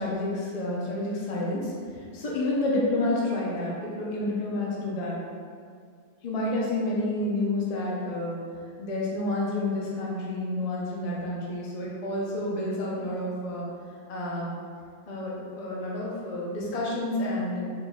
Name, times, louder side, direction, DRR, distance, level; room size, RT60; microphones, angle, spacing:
voice 1, 0.0-5.2 6.2-8.4 8.8-13.7 14.1-14.5 15.1-17.7, left 1 dB, 90° left, -5 dB, 0.3 m, -29 dB
4.1 x 3.8 x 2.3 m, 2.1 s
omnidirectional pair, 1.8 m